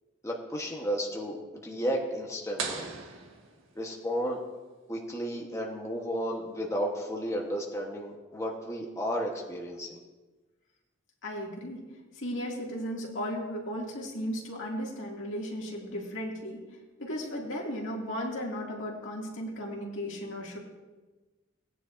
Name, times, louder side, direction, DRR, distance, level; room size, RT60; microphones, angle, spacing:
voice 1, 0.2-2.9 3.8-4.4 4.9-10.0, equal, 15° left, -1 dB, 1.0 m, -33 dB
sound 1, 2.6-4.3, right 5 dB, 85° right, 1.5 m, -39 dB
voice 2, 11.2-11.8 12.2-16.6 17.0-20.6, equal, 75° left, -2 dB, 2.2 m, -35 dB
18.0 x 9.8 x 2.6 m, 1.2 s
head